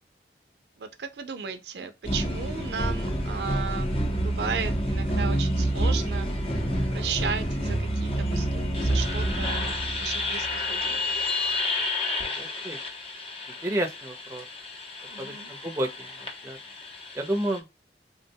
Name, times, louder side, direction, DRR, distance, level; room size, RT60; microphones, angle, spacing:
voice 1, 0.8-3.9 4.2-6.3 6.9-9.7 10.0-11.0 15.1-15.5, right 6 dB, 70° right, 0.5 m, -35 dB
sound 1, 2.0-17.6, equal, 35° left, 0.7 m, -29 dB
voice 2, 12.2-12.8 13.6-14.4 15.2-16.1 16.4-16.6 17.1-17.6, right 1 dB, 15° right, 0.6 m, -30 dB
3.4 x 2.2 x 2.7 m
head